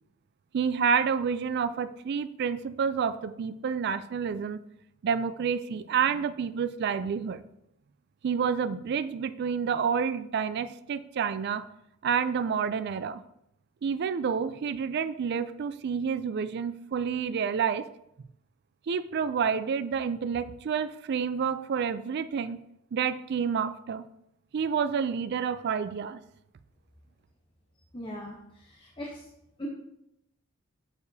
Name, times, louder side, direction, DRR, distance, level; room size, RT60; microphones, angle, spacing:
voice 1, 0.5-4.6 5.0-7.4 8.2-11.6 12.0-13.2 13.8-17.9 18.9-22.6 22.9-24.1 24.5-26.2, right 6 dB, 50° right, 13 dB, 0.3 m, -29 dB
voice 2, 27.9-28.4 28.8-29.1 29.6-29.7, equal, 25° left, -2 dB, 0.8 m, -38 dB
6.9 x 6.5 x 2.7 m, 0.81 s
head